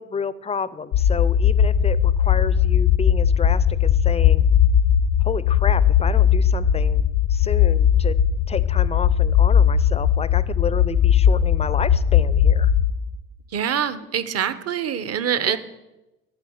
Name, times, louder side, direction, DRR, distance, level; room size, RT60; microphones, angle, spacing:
voice 1, 0.0-4.4 5.2-7.0 7.3-8.2 8.5-12.7 15.5-15.6, left 5 dB, 20° left, 17 dB, 0.5 m, -30 dB
sound 1, 0.9-12.9, left 9 dB, 60° left, 0.7 m, -18 dB
voice 2, 13.5-15.6, right 8 dB, 45° right, 13 dB, 1.0 m, -24 dB
12.5 x 4.8 x 7.9 m, 1.0 s
supercardioid pair, 85°, 35 cm